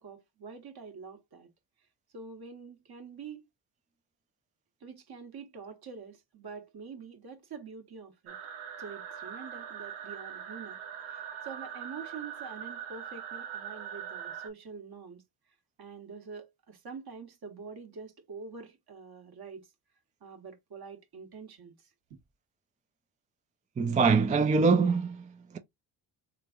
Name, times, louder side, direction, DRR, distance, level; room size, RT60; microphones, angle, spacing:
voice 1, 0.0-1.5 2.1-3.5 4.8-8.4 8.8-10.8 11.1-15.2 15.8-19.6 20.2-22.2, right 5 dB, 50° right, 1.3 m, -46 dB
sound 1, 8.3-14.5, right 8 dB, 75° right, 0.8 m, -41 dB
voice 2, 23.8-25.6, right 4 dB, 20° right, 0.3 m, -24 dB
3.5 x 3.2 x 2.4 m
supercardioid pair, 65°, 49 cm